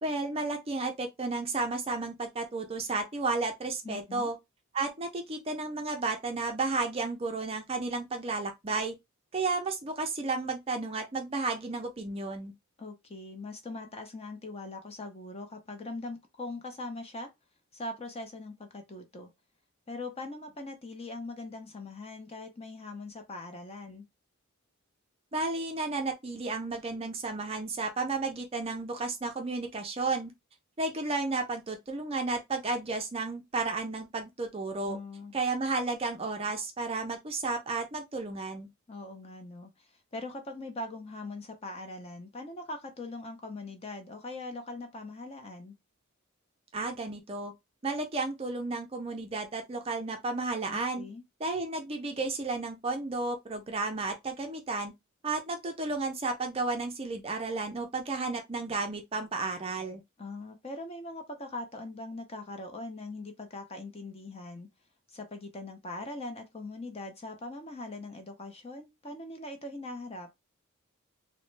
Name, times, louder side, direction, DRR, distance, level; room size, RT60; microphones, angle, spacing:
voice 1, 0.0-4.4 4.7-8.9 9.3-12.5 25.3-30.3 30.8-35.0 35.3-38.7 46.7-47.5 47.8-51.0 51.4-54.9 55.2-60.0, right 3 dB, 25° right, 0.4 m, -32 dB
voice 2, 3.8-4.3 12.8-17.3 17.7-19.3 19.9-24.0 34.9-35.3 38.9-45.8 50.7-51.2 60.2-64.7 65.1-70.3, left 2 dB, 25° left, 0.6 m, -41 dB
3.0 x 2.1 x 3.1 m
head